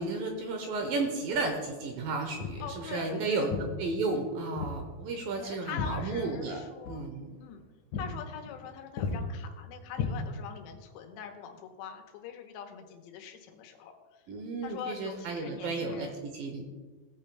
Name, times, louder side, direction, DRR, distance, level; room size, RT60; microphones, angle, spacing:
voice 1, 0.0-6.6 6.9-7.3 14.3-16.7, right 3 dB, 75° right, 3 dB, 2.2 m, -33 dB
Walk footsteps, 2.4-2.7 3.5-3.7 4.6-4.8 5.1-6.5 6.8-7.0 7.4-7.6 7.9-8.1 8.4-8.7 9.0-9.2 9.9-10.6, left 5 dB, 65° left, 2.1 m, -34 dB
voice 2, 2.6-3.5 5.4-7.0 7.4-7.6 7.9-13.9 14.6-16.3, left 7 dB, 90° left, 4 dB, 3.1 m, -43 dB
17.5 x 8.6 x 2.3 m, 1.4 s
omnidirectional pair, 4.9 m